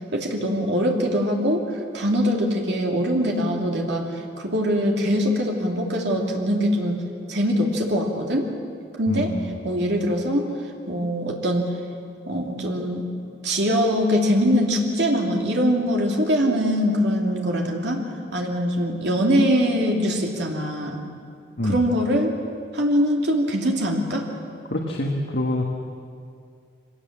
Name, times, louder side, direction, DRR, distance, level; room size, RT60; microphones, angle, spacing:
voice 1, 0.1-4.1 4.4-7.0 7.3-8.5 9.0-9.3 9.6-10.5 10.9-11.7 12.3-13.1 13.4-18.0 18.3-21.0 21.6-22.3 22.7-24.2, equal, 65° right, 0 dB, 2.7 m, -22 dB
voice 2, 24.7-25.6, left 1 dB, 65° left, 0 dB, 1.6 m, -25 dB
23.5 x 17.5 x 7.4 m, 2.3 s
head